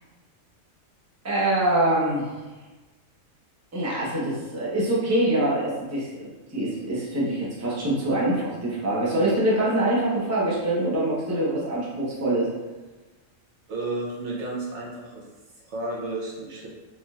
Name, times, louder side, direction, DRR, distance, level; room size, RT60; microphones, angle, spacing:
voice 1, 1.2-2.3 3.7-6.3 6.5-12.5, right 1 dB, 15° right, -6 dB, 0.7 m, -24 dB
voice 2, 13.7-15.3 15.6-16.7, right 2 dB, 65° right, -4 dB, 1.0 m, -32 dB
4.0 x 3.1 x 2.3 m, 1.2 s
omnidirectional pair, 1.4 m